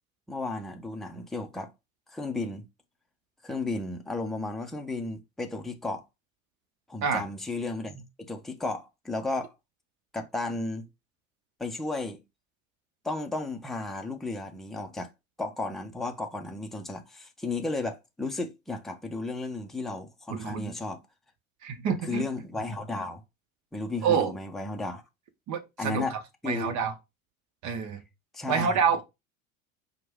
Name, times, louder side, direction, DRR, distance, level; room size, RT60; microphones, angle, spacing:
voice 1, 0.3-1.7 2.1-2.7 3.4-6.0 6.9-9.5 10.1-10.9 11.6-12.2 13.0-15.1 15.4-21.0 22.1-23.2 23.7-25.0 25.8-26.1 26.4-26.8 28.3-28.7, left 2 dB, ahead, 0.6 m, -34 dB
voice 2, 20.3-20.7 21.6-22.2 24.0-24.3 25.5-26.2 26.4-26.9 27.6-28.0 28.5-29.0, right 6 dB, 45° right, 1.1 m, -27 dB
4.8 x 2.4 x 3.6 m
hypercardioid pair, 75°, 41 cm